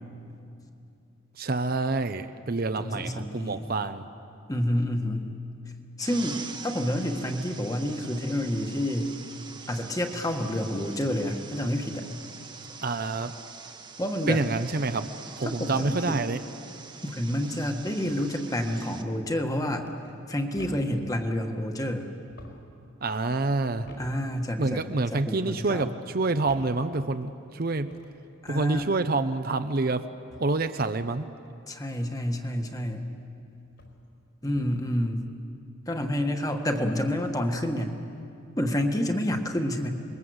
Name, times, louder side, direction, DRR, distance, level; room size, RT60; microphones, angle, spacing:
voice 1, 1.4-4.0 12.8-13.3 14.3-15.1 15.4-16.4 23.0-23.9 24.6-27.9 28.5-30.1 30.4-31.3, right 3 dB, 45° right, 10 dB, 0.7 m, -27 dB
voice 2, 2.8-3.7 4.5-5.3 6.0-9.2 9.7-12.1 14.0-14.4 15.4-16.2 17.0-19.9 20.3-22.1 24.0-25.9 28.4-28.9 31.7-33.1 34.4-35.3 35.9-37.9 38.6-39.9, left 1 dB, 15° left, 4 dB, 1.5 m, -29 dB
sound 1, 6.0-19.0, right 5 dB, 20° right, 1.1 m, -44 dB
sound 2, 17.9-18.3 19.8-20.2 20.6-21.1 22.2-22.8 23.8-24.3 25.1-25.6 26.5-26.9 27.8-28.2 28.7-29.1 30.3-30.6 32.7-32.8 33.7-34.0 34.4-34.8, left 1 dB, 65° left, 4.8 m, -48 dB
27.5 x 21.5 x 8.0 m, 2.6 s
head